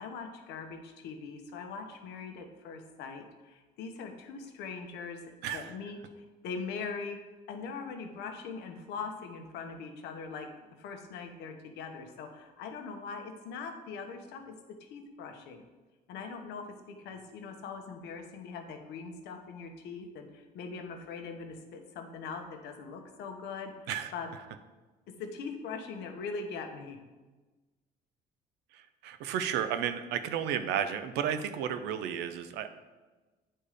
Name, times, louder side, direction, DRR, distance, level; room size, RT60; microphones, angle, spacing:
voice 1, 0.0-7.2 7.5-10.5 10.8-14.5 14.8-15.6 16.1-24.3 25.1-27.0, left 5 dB, 85° left, 5 dB, 1.1 m, -41 dB
voice 2, 5.4-5.7 23.9-24.1 28.7-32.7, right 9 dB, 90° right, 9 dB, 0.7 m, -33 dB
8.9 x 4.5 x 4.9 m, 1.2 s
cardioid pair, 110°, 17 cm